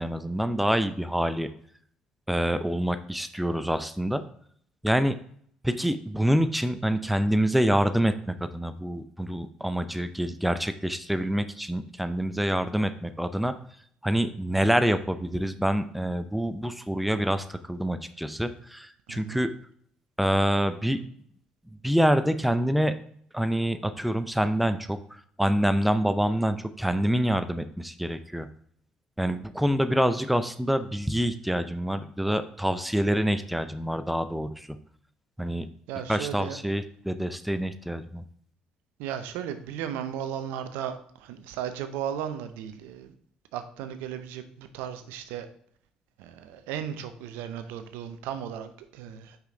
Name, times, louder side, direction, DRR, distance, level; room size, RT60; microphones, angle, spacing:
voice 1, 0.0-1.5 2.3-4.2 4.8-5.2 5.6-8.1 8.5-13.5 14.0-19.5 20.2-21.0 21.8-22.9 23.3-25.0 25.4-28.5 29.2-34.5 35.4-35.7 36.1-38.2, equal, ahead, 11 dB, 0.6 m, -26 dB
voice 2, 19.1-19.4 35.9-36.6 39.0-43.1 43.5-45.5 46.2-49.4, right 9 dB, 70° right, 9 dB, 0.6 m, -35 dB
5.8 x 5.6 x 3.7 m, 0.62 s
hypercardioid pair, 50°, 3 cm